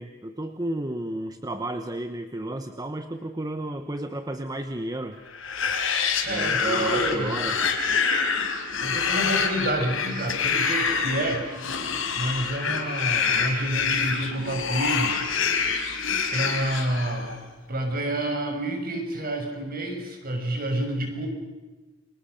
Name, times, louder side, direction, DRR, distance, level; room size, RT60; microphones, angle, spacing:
voice 1, 0.0-5.2 6.2-7.6, right 1 dB, 20° right, 7 dB, 1.1 m, -32 dB
sound 1, 5.3-17.4, left 5 dB, 80° left, 4.5 m, -26 dB
voice 2, 6.3-7.4 8.8-11.4 12.2-15.2 16.3-17.3 17.7-21.3, right 1 dB, 45° right, 4 dB, 6.2 m, -28 dB
29.5 x 24.5 x 6.6 m, 1.2 s
head